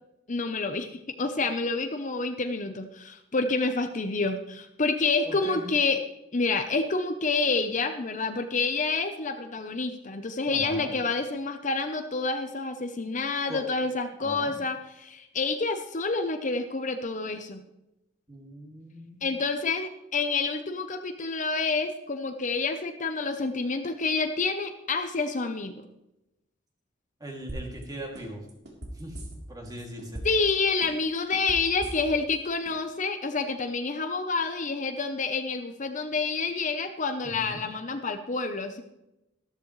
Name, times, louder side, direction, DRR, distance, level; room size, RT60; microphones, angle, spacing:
voice 1, 0.3-6.0 6.3-17.6 19.2-25.8 30.2-38.8, left 4 dB, 40° left, 7 dB, 0.8 m, -28 dB
voice 2, 5.2-5.6 10.5-11.0 13.5-13.7 14.2-14.6 18.3-19.4 27.2-28.5 28.9-29.2 29.5-30.2 37.2-37.7, right 1 dB, 20° right, 0 dB, 2.6 m, -40 dB
sound 1, 27.5-27.8 28.1-29.7 30.0-30.5 30.8-32.3 32.6-32.7, right 1 dB, 60° right, 3.5 m, -38 dB
14.0 x 13.0 x 3.2 m, 0.90 s
head